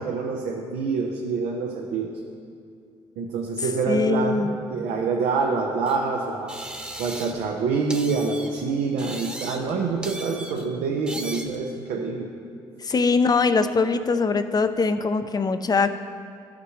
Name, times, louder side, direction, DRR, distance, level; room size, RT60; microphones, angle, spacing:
voice 1, 0.0-2.1 3.2-6.5 7.0-12.3, right 4 dB, 75° right, 0 dB, 0.8 m, -26 dB
voice 2, 3.9-4.6 12.9-16.0, left 4 dB, 30° left, 10 dB, 0.6 m, -22 dB
sound 1, 5.9-6.0 6.5-7.5 7.9-8.6 9.0-9.7 10.0-10.6 11.1-11.6, right 1 dB, 5° right, 1.0 m, -37 dB
13.5 x 6.0 x 3.2 m, 2.4 s
supercardioid pair, 60°, 12 cm